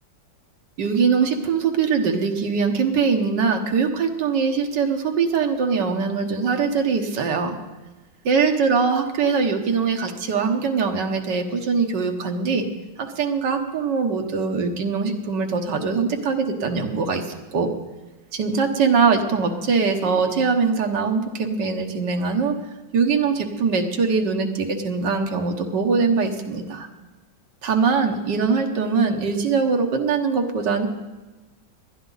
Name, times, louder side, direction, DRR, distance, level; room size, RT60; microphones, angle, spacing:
voice 1, 0.8-7.5 8.2-12.7 13.0-17.7 18.3-22.5 22.9-26.9 27.6-30.9, right 5 dB, 75° right, 4 dB, 1.8 m, -22 dB
19.5 x 12.0 x 4.0 m, 1.2 s
omnidirectional pair, 1.9 m